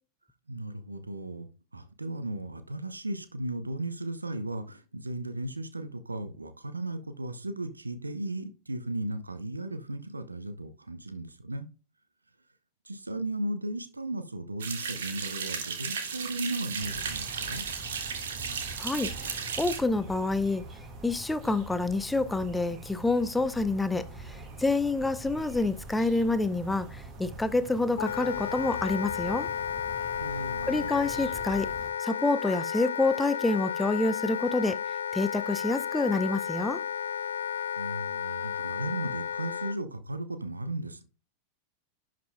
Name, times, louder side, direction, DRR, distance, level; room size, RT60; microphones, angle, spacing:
voice 1, 0.5-11.7 12.8-17.6 30.2-30.9 37.7-41.0, right 1 dB, 80° right, 0.8 m, -36 dB
sound 1, 14.6-19.8, right 6 dB, 65° right, 1.4 m, -35 dB
sound 2, 16.8-31.9, right 2 dB, 30° right, 1.8 m, -44 dB
voice 2, 18.8-20.6 21.0-29.5 30.7-31.7 32.0-34.8 35.1-36.8, left 3 dB, 10° left, 0.7 m, -28 dB
Wind instrument woodwind instrument, 28.0-39.8, left 8 dB, 65° left, 0.3 m, -33 dB
11.0 x 5.1 x 2.3 m
figure-of-eight pair, 90°, 0 cm